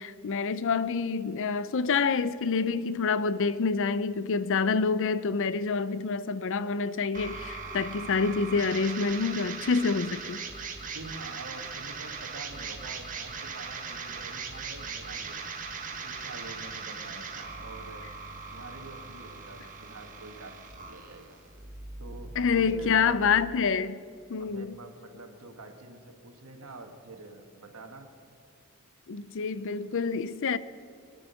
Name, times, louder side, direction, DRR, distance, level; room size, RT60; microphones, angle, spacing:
voice 1, 0.0-10.4 22.4-24.0 24.3-24.8 29.1-30.6, left 5 dB, 60° left, 0.5 m, -27 dB
sound 1, 7.1-23.2, right 5 dB, 40° right, 1.5 m, -40 dB
voice 2, 10.9-15.4 15.9-18.0 18.5-21.4 22.0-23.3 24.4-28.1, right 2 dB, 80° right, 1.8 m, -46 dB
24.0 x 10.0 x 5.7 m
head